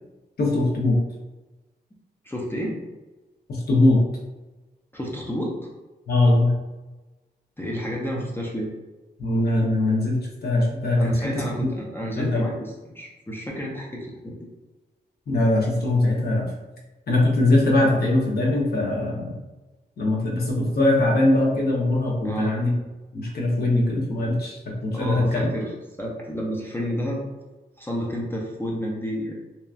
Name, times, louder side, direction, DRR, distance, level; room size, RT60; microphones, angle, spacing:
voice 1, 0.4-1.0 3.5-4.0 6.1-6.6 9.2-11.7 12.2-12.4 15.3-16.5 17.1-19.4 20.0-22.7 23.1-25.5, left 2 dB, 60° left, -2 dB, 0.8 m, -21 dB
voice 2, 2.2-2.9 4.9-5.7 7.6-8.7 11.0-14.3 22.2-22.5 24.9-25.7 26.0-27.2 27.8-29.4, equal, 10° left, -3 dB, 0.4 m, -30 dB
2.8 x 2.3 x 2.3 m, 1.1 s
wide cardioid pair, 120°, 18 cm